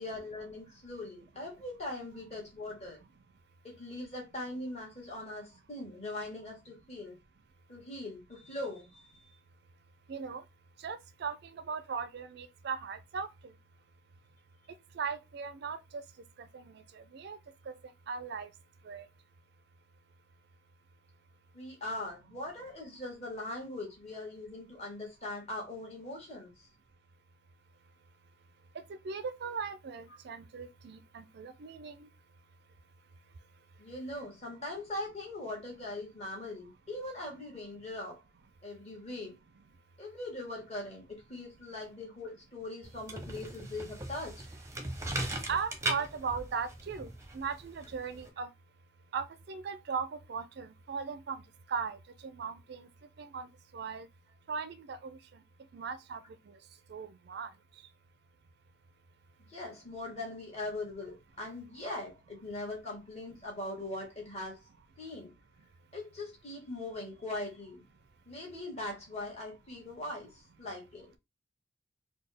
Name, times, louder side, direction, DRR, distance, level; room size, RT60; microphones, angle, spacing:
voice 1, 0.0-3.0 3.6-7.2 7.7-9.3 21.5-26.5 33.8-38.2 38.6-39.3 40.0-44.5 59.5-64.6 65.0-65.3 65.9-67.9 68.3-70.3 70.6-71.1, left 2 dB, 35° left, 1.5 m, -41 dB
voice 2, 10.1-10.4 10.8-13.3 15.0-15.8 16.5-17.4 17.7-17.8 18.1-18.5 18.9-19.1 29.0-32.1 45.5-48.5 49.1-51.4 51.7-52.0 52.2-52.9 53.2-53.5 53.7-54.1 54.5-55.2 55.7-56.2 56.9-57.5, right 5 dB, 55° right, 0.4 m, -38 dB
sound 1, 42.8-48.3, right 1 dB, 15° right, 0.6 m, -39 dB
4.1 x 2.2 x 3.3 m
head